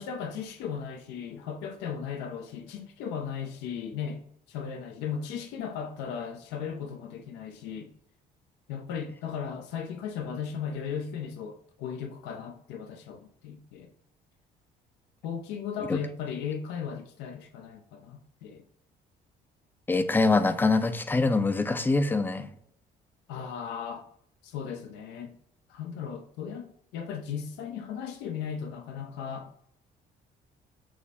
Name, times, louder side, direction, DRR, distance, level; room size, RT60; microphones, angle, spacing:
voice 1, 0.0-4.2 4.5-7.9 8.7-13.9 15.2-18.6 23.3-24.1 24.4-25.4 25.7-29.5, left 7 dB, 90° left, 0.5 m, -36 dB
voice 2, 19.9-22.5, left 3 dB, 10° left, 0.3 m, -24 dB
6.1 x 2.1 x 3.4 m
cardioid pair, 110°, 17 cm